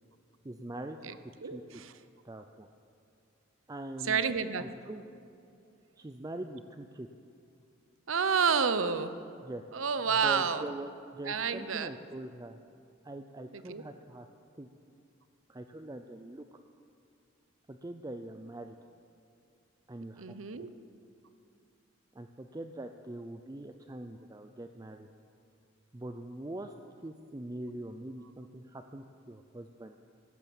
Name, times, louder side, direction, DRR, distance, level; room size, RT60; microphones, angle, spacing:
voice 1, 0.4-1.0 1.4-1.8 2.2-2.7 3.7-4.2 4.6-5.0 6.0-7.1 9.4-9.6 10.1-12.6 13.0-14.3 14.6-14.7 15.5-16.6 17.7-18.7 19.9-20.3 22.1-25.1 25.9-26.7 27.0-30.0, right 1 dB, 20° right, 7 dB, 0.5 m, -43 dB
voice 2, 1.4-1.9 4.0-4.6 8.1-9.1 9.7-10.6 11.2-11.9 13.5-13.8 20.2-20.7, right 6 dB, 80° right, 13 dB, 0.8 m, -29 dB
16.0 x 12.0 x 7.1 m, 2.6 s
head